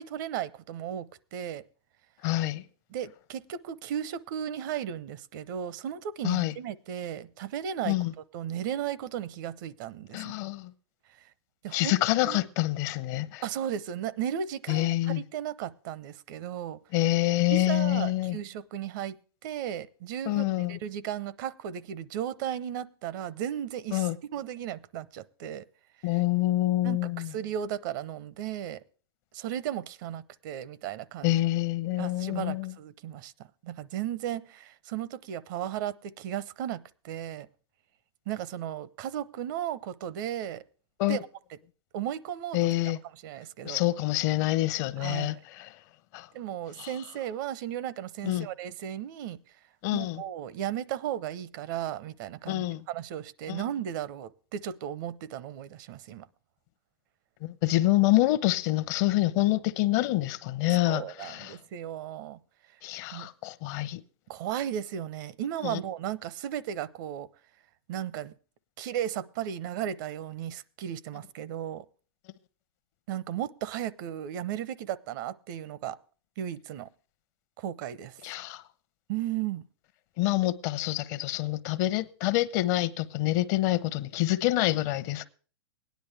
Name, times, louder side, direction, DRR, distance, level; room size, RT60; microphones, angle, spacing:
voice 1, 0.0-1.6 2.9-8.0 8.3-10.3 11.6-12.0 12.2-12.4 13.4-16.8 17.5-19.2 19.4-25.6 26.0-26.2 26.8-28.8 29.3-31.4 32.0-33.3 33.6-37.5 38.3-40.6 41.1-41.2 41.9-42.7 43.2-43.8 45.0-45.4 46.3-49.4 49.9-56.3 60.8-62.4 63.1-63.3 64.3-67.3 67.9-68.3 68.8-71.9 73.1-76.0 76.4-76.9 77.6-78.2 79.1-79.6, right 10 dB, 55° right, 0.7 m, -35 dB
voice 2, 2.2-2.6 6.2-6.5 7.8-8.1 10.1-10.7 11.7-13.4 14.7-15.2 16.9-18.4 20.3-20.8 23.9-24.1 26.0-27.3 31.2-32.7 41.0-41.2 42.5-43.0 43.6-45.7 46.1-46.3 46.8-46.9 48.2-48.5 49.8-50.2 52.5-52.8 53.5-53.6 57.4-61.6 62.8-64.0 65.6-65.8 78.2-78.6 80.2-85.3, left 16 dB, 50° left, 0.8 m, -27 dB
17.0 x 10.5 x 3.4 m
hypercardioid pair, 130°, 12 cm